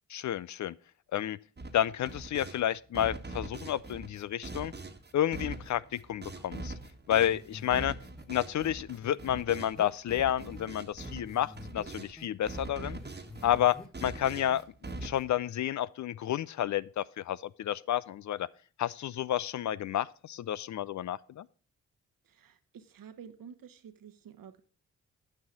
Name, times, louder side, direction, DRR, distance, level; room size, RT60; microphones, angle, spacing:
voice 1, 0.1-0.8 1.1-1.4 1.7-4.7 5.1-6.7 7.1-7.9 8.3-13.0 13.4-14.6 15.0-18.5 18.8-21.5, left 11 dB, 50° left, 0.4 m, -30 dB
sound 1, 1.6-2.6 2.9-12.1 12.5-15.4, right 2 dB, 25° right, 1.4 m, -43 dB
sound 2, 7.2-7.9 8.2-8.3 8.6-8.7 9.0-10.7 11.0-11.9 12.2-13.9 14.1-14.6 14.9-15.1, left 2 dB, ahead, 1.8 m, -49 dB
voice 2, 22.2-24.6, right 7 dB, 60° right, 1.1 m, -50 dB
8.9 x 5.5 x 6.0 m
supercardioid pair, 45°, 37 cm